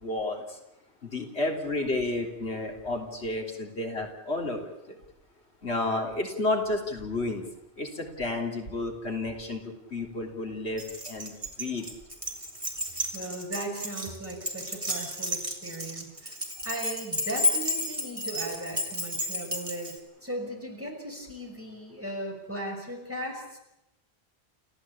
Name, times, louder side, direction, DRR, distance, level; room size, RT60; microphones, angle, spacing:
voice 1, 0.0-0.6 1.0-5.0 5.6-7.4 7.8-11.9, left 2 dB, 85° left, 2 dB, 3.6 m, -31 dB
Keys jangling, 10.8-20.0, left 1 dB, 30° right, 3.1 m, -32 dB
voice 2, 13.1-16.4 16.6-23.6, right 1 dB, 10° right, 0 dB, 5.9 m, -37 dB
29.5 x 15.0 x 8.6 m, 0.87 s
omnidirectional pair, 1.1 m